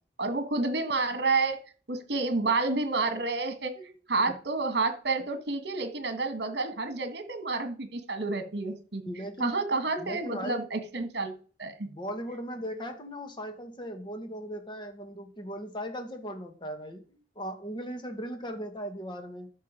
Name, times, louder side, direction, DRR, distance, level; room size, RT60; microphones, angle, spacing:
voice 1, 0.2-1.6 1.9-3.7 4.1-9.0 9.4-11.3 11.6-11.9, right 3 dB, 65° right, 8 dB, 1.7 m, -29 dB
voice 2, 9.0-9.6 10.0-10.6 11.8-19.5, equal, 25° left, 6 dB, 1.8 m, -38 dB
13.0 x 5.5 x 5.2 m, 0.39 s
head